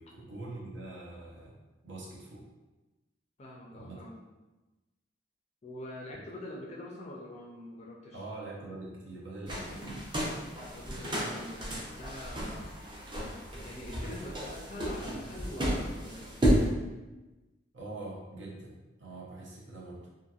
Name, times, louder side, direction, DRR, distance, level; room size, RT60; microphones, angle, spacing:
voice 1, 0.0-1.6 1.8-2.5 3.7-4.0 6.1-6.2 8.1-10.0 17.7-20.1, right 2 dB, 70° right, -4 dB, 0.7 m, -44 dB
voice 2, 3.4-4.2 5.6-8.2 10.7-12.7 13.6-16.3, left 1 dB, 35° left, -3 dB, 0.4 m, -44 dB
sound 1, 9.5-16.7, equal, 25° right, 0.5 m, -32 dB
2.7 x 2.5 x 2.4 m, 1.1 s
head